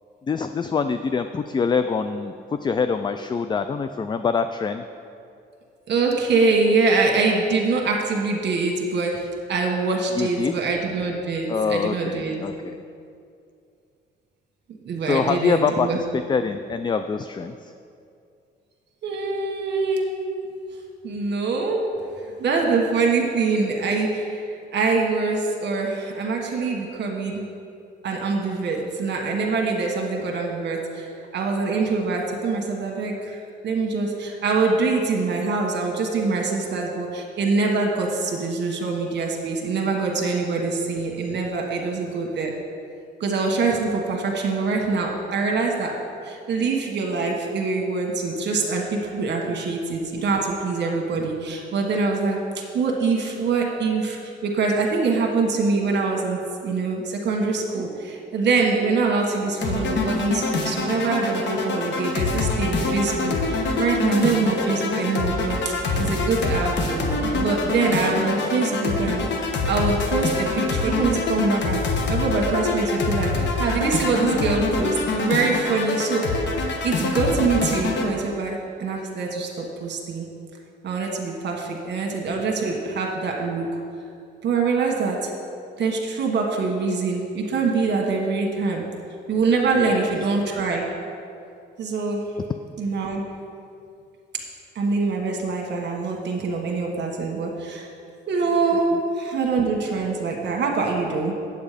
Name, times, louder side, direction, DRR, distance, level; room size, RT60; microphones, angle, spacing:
voice 1, 0.3-2.3 2.6-4.8 10.1-10.5 11.5-12.8 15.1-17.7 49.5-49.7 89.7-90.1, left 5 dB, 25° left, 9 dB, 0.3 m, -25 dB
voice 2, 5.9-12.4 14.8-16.0 19.0-20.2 21.0-21.9 22.4-27.4 28.0-31.1 31.3-42.5 43.2-46.0 46.2-69.2 69.7-76.3 76.8-80.3 80.8-83.8 84.4-85.3 85.8-88.8 89.3-90.9 91.8-92.2 92.8-93.2 94.7-97.9 98.3-101.3, right 4 dB, 60° right, 1 dB, 1.5 m, -24 dB
sound 1, 59.6-78.1, left 3 dB, 65° left, 1.2 m, -25 dB
8.3 x 8.2 x 5.0 m, 2.4 s
cardioid pair, 90°, 20 cm